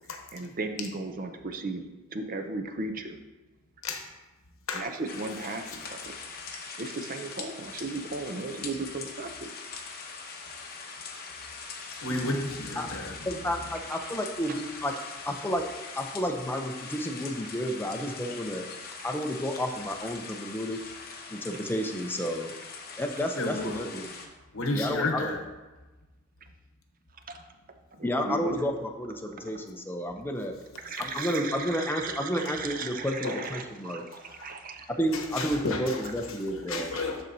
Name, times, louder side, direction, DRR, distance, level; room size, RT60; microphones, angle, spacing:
voice 1, 0.1-1.8 2.1-3.2 4.7-6.1 6.8-9.5 27.3-27.4 28.0-28.5 29.4-29.5 30.8-34.9, right 3 dB, 45° right, 6 dB, 0.6 m, -36 dB
sound 1, 5.0-24.3, left 4 dB, 50° left, 0.8 m, -42 dB
voice 2, 12.0-13.2 23.4-23.9 24.5-25.4 33.2-33.5 34.4-34.5 35.1-36.0 36.4-37.2, left 2 dB, 75° left, 4 dB, 1.0 m, -32 dB
voice 3, 13.3-14.9 15.3-15.6 15.9-18.7 19.0-20.8 21.3-22.5 23.0-24.1 24.7-25.3 28.0-30.5 31.0-34.0 35.0-36.9, equal, 10° left, 3 dB, 0.6 m, -31 dB
12.5 x 4.3 x 2.7 m, 1.2 s
head